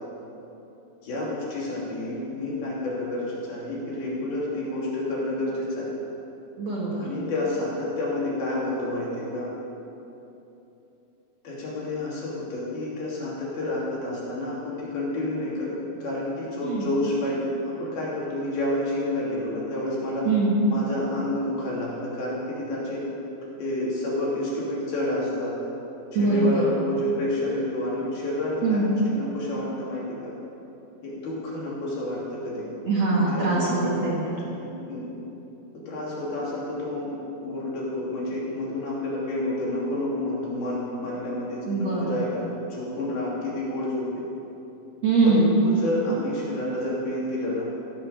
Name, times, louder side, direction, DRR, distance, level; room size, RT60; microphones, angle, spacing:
voice 1, 1.0-5.9 7.0-9.5 11.4-15.8 16.0-20.3 20.7-23.0 23.6-25.5 26.2-30.3 31.0-32.8 33.1-34.0 34.4-35.1 35.9-37.1 37.4-42.4 42.7-44.2 45.2-47.7, left 1 dB, 65° left, -6 dB, 4.7 m, -29 dB
voice 2, 6.6-7.0 16.6-16.9 20.3-20.6 26.1-26.6 28.6-29.0 32.9-34.4 41.7-42.2 45.0-45.5, right 3 dB, 50° right, -6 dB, 2.4 m, -23 dB
16.5 x 8.2 x 7.1 m, 3.0 s
omnidirectional pair, 4.8 m